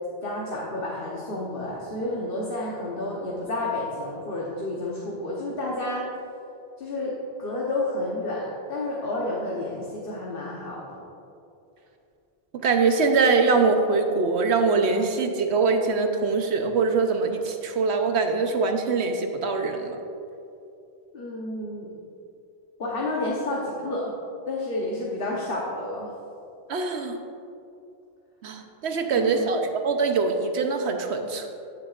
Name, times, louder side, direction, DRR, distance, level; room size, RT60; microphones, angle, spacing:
voice 1, 0.2-6.0 6.8-11.0 21.1-21.9 22.8-24.1 24.5-26.1 29.1-29.5, left 2 dB, 55° left, -4 dB, 1.2 m, -30 dB
voice 2, 12.5-20.0 26.7-27.2 28.4-31.5, right 4 dB, 75° right, 5 dB, 1.0 m, -23 dB
14.0 x 8.0 x 2.5 m, 2.6 s
omnidirectional pair, 1.2 m